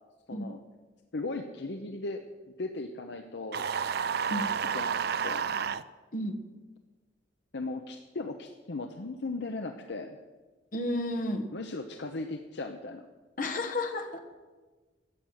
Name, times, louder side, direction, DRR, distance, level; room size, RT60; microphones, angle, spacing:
voice 1, 0.3-0.6 1.1-3.6 4.7-5.0 5.2-5.4 7.5-10.2 11.5-13.1, left 2 dB, 65° left, 6 dB, 0.8 m, -37 dB
sound 1, 3.5-5.8, right 7 dB, 60° right, 0.5 m, -30 dB
voice 2, 10.7-11.5 13.4-14.2, left 1 dB, 45° left, 6 dB, 1.5 m, -32 dB
13.0 x 7.8 x 8.9 m, 1.3 s
head